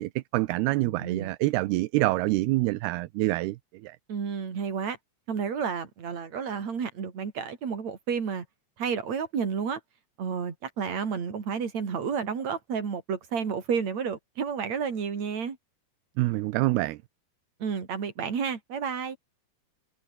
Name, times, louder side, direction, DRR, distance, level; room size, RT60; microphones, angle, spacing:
voice 1, 0.0-4.0 16.2-17.0, right 19 dB, 80° right, 2.6 m, -26 dB
voice 2, 0.8-1.3 4.1-5.0 5.3-8.4 8.8-9.8 10.2-15.6 17.6-19.2, right 6 dB, 45° right, 4.5 m, -31 dB
omnidirectional pair, 4.8 m